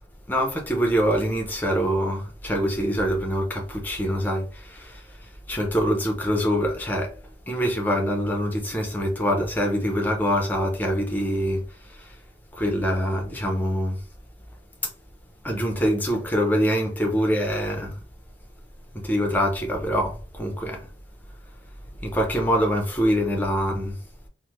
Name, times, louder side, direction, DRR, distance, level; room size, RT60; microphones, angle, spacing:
voice 1, 0.3-7.2 7.5-12.2 12.5-14.0 15.4-18.0 18.9-20.9 22.0-24.0, equal, 10° left, 0.5 m, -25 dB
3.2 x 2.0 x 2.9 m
head